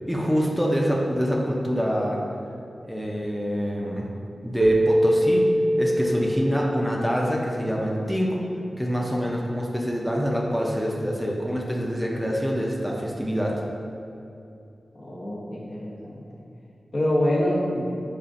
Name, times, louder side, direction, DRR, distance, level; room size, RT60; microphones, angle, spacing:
voice 1, 0.0-2.2 2.8-4.1 4.4-5.5 5.8-8.4 8.8-13.6, equal, ahead, -2 dB, 0.5 m, -26 dB
Keyboard (musical), 4.6-7.8, equal, 75° right, 0.3 m, -23 dB
voice 2, 15.0-16.2 16.9-17.8, left 1 dB, 65° left, -5 dB, 0.8 m, -25 dB
5.5 x 2.4 x 2.5 m, 2.7 s
cardioid pair, 50°, 0 cm